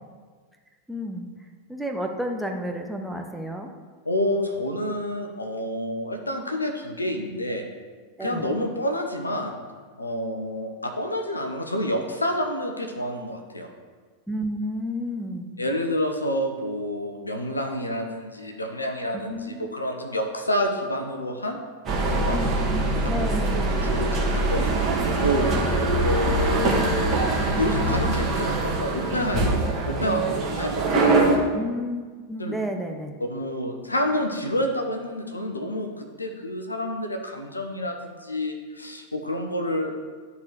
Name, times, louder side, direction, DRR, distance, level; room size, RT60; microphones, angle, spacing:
voice 1, 0.9-1.3 1.7-3.7 8.2-8.5 14.3-15.6 19.1-19.6 22.3-23.7 31.5-33.1, equal, ahead, 2 dB, 0.8 m, -31 dB
voice 2, 4.0-7.6 8.2-9.5 10.0-13.7 15.6-21.6 22.1-22.4 23.0-23.3 23.8-24.7 25.2-25.5 26.0-27.2 27.6-30.8 31.2-31.4 32.4-32.6 33.3-39.9, left 1 dB, 80° left, 4 dB, 0.8 m, -28 dB
sound 1, 21.9-31.4, right 2 dB, 30° right, 1.6 m, -23 dB
12.0 x 4.1 x 3.3 m, 1.5 s
figure-of-eight pair, 90°, 0 cm